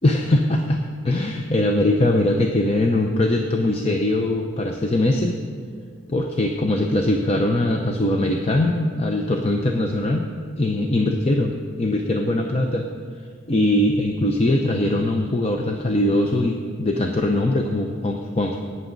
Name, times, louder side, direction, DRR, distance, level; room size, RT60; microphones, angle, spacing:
voice 1, 0.0-5.4 6.1-10.3 10.6-12.9 13.5-18.6, left 1 dB, 30° left, 3 dB, 0.6 m, -21 dB
17.0 x 9.4 x 4.0 m, 2.1 s
head